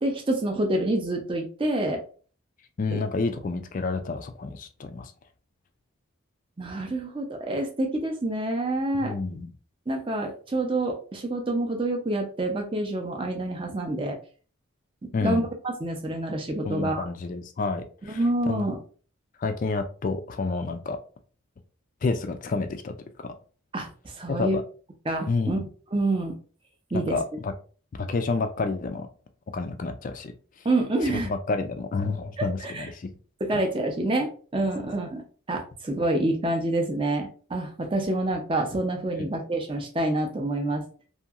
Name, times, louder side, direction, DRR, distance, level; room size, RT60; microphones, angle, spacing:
voice 1, 0.0-2.0 2.9-3.0 6.6-9.1 9.9-14.2 15.2-17.0 18.1-18.8 23.7-24.6 25.1-25.6 25.9-26.3 26.9-27.2 30.6-31.3 32.4-32.9 33.4-35.2 35.5-40.8, right 2 dB, 25° right, 3 dB, 0.5 m, -27 dB
voice 2, 2.8-5.1 9.0-9.5 15.1-15.5 16.6-18.7 19.4-21.0 22.0-23.3 24.3-24.6 25.3-25.7 26.9-27.5 27.9-29.1 29.5-30.3 31.1-33.1 33.5-33.7, left 3 dB, 40° left, 7 dB, 0.3 m, -29 dB
2.8 x 2.6 x 2.4 m, 0.39 s
head